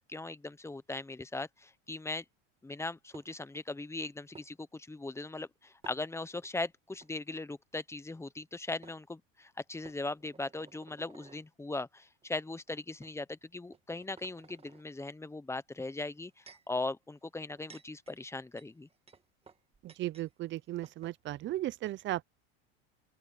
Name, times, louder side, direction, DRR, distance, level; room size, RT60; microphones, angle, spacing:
voice 1, 0.0-2.2 2.6-18.9, left 2 dB, 10° left, 1.0 m, -39 dB
sound 1, 3.1-3.6 4.3-4.5 5.8-6.5 6.9-7.1 8.4-8.5 8.8-9.0 9.8-11.4 12.2-12.4 13.0-13.1 13.7-14.8 16.0-16.7 17.4-20.3 20.5-20.6 20.8-21.2, right 5 dB, 20° right, 1.8 m, -57 dB
voice 2, 19.8-22.2, right 15 dB, 35° right, 0.7 m, -36 dB
open air
supercardioid pair, 110°, 32 cm